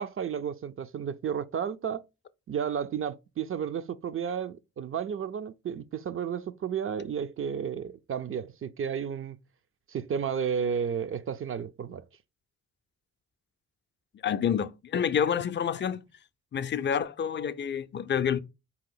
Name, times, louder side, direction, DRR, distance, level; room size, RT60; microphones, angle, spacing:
voice 1, 0.0-2.0 2.5-9.4 9.9-12.0, right 7 dB, 45° right, 0.4 m, -32 dB
voice 2, 14.2-16.0 16.5-18.4, left 8 dB, 35° left, 0.4 m, -28 dB
4.6 x 2.9 x 3.8 m
cardioid pair, 75°, 31 cm